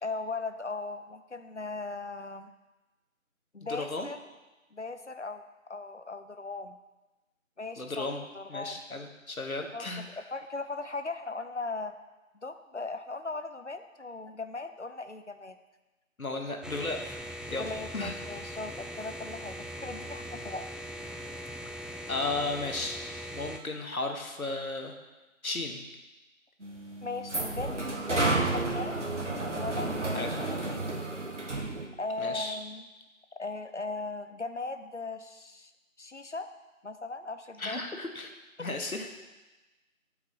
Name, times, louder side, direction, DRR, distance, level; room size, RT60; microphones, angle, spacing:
voice 1, 0.0-2.5 3.5-4.2 4.7-6.8 7.6-8.1 8.3-8.8 9.7-11.9 12.4-15.6 17.5-20.6 27.0-29.0 29.5-30.8 32.0-32.9 33.4-35.7 36.0-36.5 36.8-37.8, left 3 dB, 60° left, 9 dB, 0.5 m, -38 dB
voice 2, 3.7-4.1 7.8-8.2 8.5-10.0 16.2-17.2 17.5-17.7 17.9-18.1 22.1-23.0 23.3-24.9 25.4-25.8 30.1-30.4 32.2-32.6 37.6-38.3 38.6-39.1, left 2 dB, 90° left, 4 dB, 1.1 m, -34 dB
sound 1, 16.6-23.6, equal, ahead, 0.3 m, -41 dB
sound 2, 26.6-31.8, right 2 dB, 60° right, 0.9 m, -31 dB
7.1 x 4.8 x 3.7 m, 1.1 s
figure-of-eight pair, 175°, 41 cm